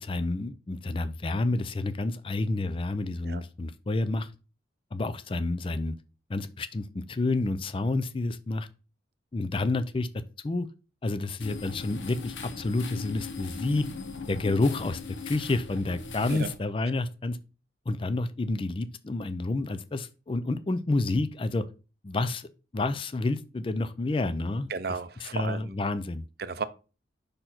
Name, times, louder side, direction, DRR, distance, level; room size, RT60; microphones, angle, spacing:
voice 1, 0.0-4.3 4.9-5.9 6.3-8.7 9.3-10.7 11.0-13.8 14.3-15.0 15.3-17.4 17.9-21.6 22.0-22.5 22.7-24.7 25.2-26.2, left 2 dB, 30° left, 0.4 m, -29 dB
sound 1, 11.4-16.5, left 4 dB, 80° left, 0.9 m, -39 dB
voice 2, 24.7-25.8 26.4-26.6, right 4 dB, 55° right, 0.5 m, -34 dB
5.2 x 4.4 x 5.8 m
head